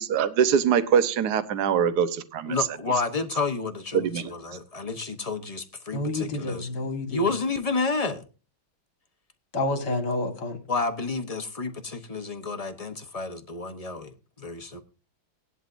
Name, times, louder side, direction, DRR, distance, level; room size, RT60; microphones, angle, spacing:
voice 1, 0.0-2.6 3.9-4.3, right 8 dB, 60° right, 12 dB, 1.4 m, -23 dB
voice 2, 2.5-6.7 7.1-8.3 10.7-14.8, left 3 dB, 35° left, 7 dB, 0.6 m, -30 dB
voice 3, 5.9-7.2 9.5-10.6, left 2 dB, 60° left, 6 dB, 2.3 m, -29 dB
18.0 x 11.0 x 2.6 m, 0.33 s
omnidirectional pair, 2.1 m